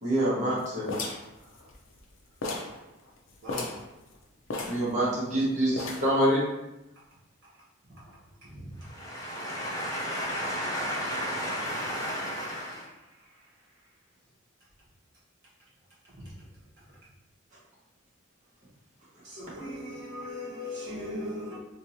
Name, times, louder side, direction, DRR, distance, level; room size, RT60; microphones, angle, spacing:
voice 1, 0.0-0.9 4.7-6.4, right 1 dB, 35° right, 1.2 m, -26 dB
sound 1, 0.9-2.1 2.4-2.8 3.1-3.2 3.4-3.9 4.5-5.3 5.8-6.2, left 2 dB, 80° left, 0.5 m, -35 dB
voice 2, 8.9-12.8, equal, 15° left, 0.8 m, -33 dB
voice 3, 19.3-21.6, left 1 dB, 55° right, 1.3 m, -37 dB
3.6 x 2.9 x 2.6 m
head